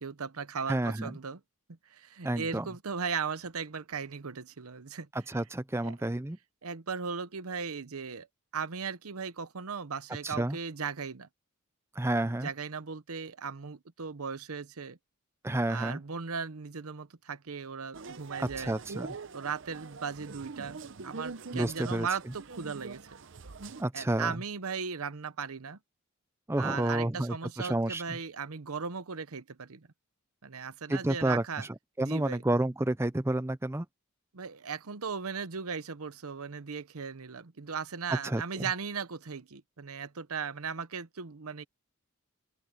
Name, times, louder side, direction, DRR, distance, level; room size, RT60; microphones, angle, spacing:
voice 1, 0.0-1.4 1.9-5.1 5.8-5.9 6.6-8.3 8.5-11.3 12.2-15.0 15.7-18.8 19.3-23.2 23.9-25.8 26.6-29.9 30.4-31.7 32.0-32.4 34.3-41.7, right 5 dB, 80° right, 0.9 m, -37 dB
voice 2, 0.7-1.2 2.2-2.7 5.1-6.4 10.2-10.6 12.0-12.5 15.4-16.0 18.4-19.1 21.5-22.1 23.8-24.4 26.5-28.2 30.9-31.7 32.0-33.9 38.1-38.7, right 1 dB, 10° right, 0.5 m, -30 dB
sound 1, 17.9-23.8, right 4 dB, 55° right, 0.7 m, -44 dB
open air
head